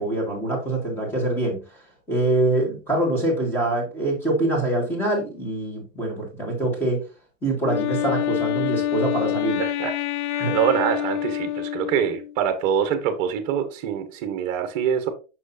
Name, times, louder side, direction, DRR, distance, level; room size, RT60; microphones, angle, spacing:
voice 1, 0.0-1.6 2.1-7.1 7.4-9.6 10.4-10.6, right 2 dB, 5° left, 1.7 m, -24 dB
Wind instrument woodwind instrument, 7.6-12.3, left 11 dB, 55° left, 0.5 m, -26 dB
voice 2, 9.6-9.9 10.3-15.1, right 8 dB, 30° right, 1.1 m, -24 dB
6.2 x 6.0 x 2.7 m
supercardioid pair, 160°, 42 cm